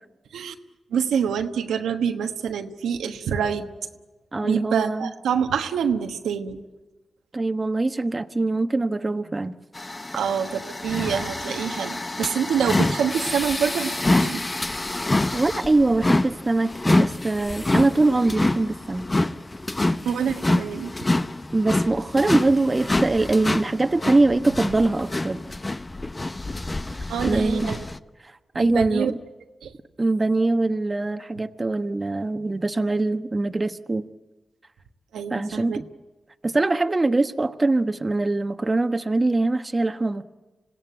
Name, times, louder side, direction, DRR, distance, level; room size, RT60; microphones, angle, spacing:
voice 1, 0.9-3.7 4.4-6.6 10.1-14.4 20.0-20.9 27.1-27.8 28.6-29.1 29.6-29.7 35.1-35.8, right 7 dB, 90° right, 5 dB, 1.2 m, -26 dB
voice 2, 4.3-5.1 7.3-9.5 15.3-19.1 21.5-25.4 27.2-27.8 28.2-29.2 30.0-34.1 35.3-35.8 36.4-40.2, right 2 dB, 35° right, 8 dB, 1.2 m, -23 dB
sound 1, 9.8-28.0, left 2 dB, 30° left, 1.0 m, -26 dB
26.5 x 16.5 x 9.2 m, 1.2 s
supercardioid pair, 45°, 0 cm